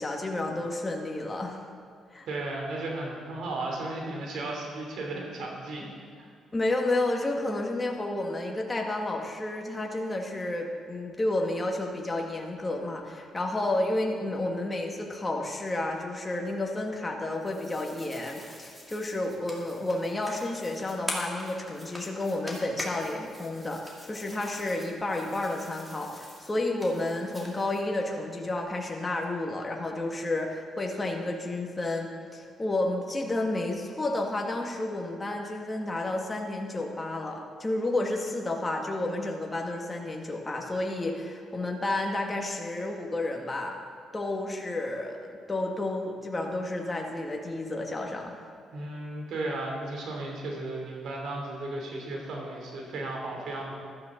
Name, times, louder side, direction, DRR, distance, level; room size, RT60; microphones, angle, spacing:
voice 1, 0.0-1.6 2.1-2.3 6.5-43.8 44.1-48.4, left 2 dB, 20° left, 1 dB, 1.7 m, -31 dB
voice 2, 2.3-6.3 48.7-53.7, right 2 dB, 75° right, -1 dB, 3.1 m, -35 dB
sound 1, 17.3-27.8, left 1 dB, 5° right, 2.9 m, -43 dB
14.5 x 12.5 x 3.9 m, 2.2 s
cardioid pair, 90°, 0 cm